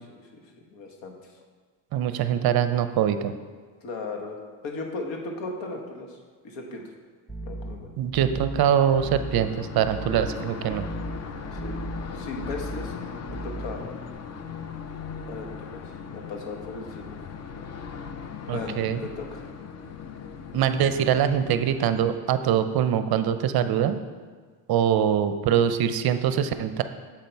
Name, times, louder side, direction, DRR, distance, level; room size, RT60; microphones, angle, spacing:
voice 1, 0.7-1.2 3.8-4.4 4.6-6.2 6.4-6.8 7.4-7.9 11.5-13.0 13.4-14.0 15.3-15.8 16.1-17.2 17.4-17.7 18.5-19.5, left 3 dB, 70° left, 2 dB, 1.3 m, -36 dB
voice 2, 1.9-3.3 8.0-10.9 18.5-19.0 20.5-24.0 24.7-26.8, right 9 dB, 55° right, 10 dB, 0.5 m, -23 dB
sound 1, 7.3-14.1, right 1 dB, ahead, 0.8 m, -38 dB
sound 2, 8.6-22.1, left 6 dB, 35° left, 0.5 m, -39 dB
7.4 x 5.3 x 4.5 m, 1.5 s
cardioid pair, 105°, 46 cm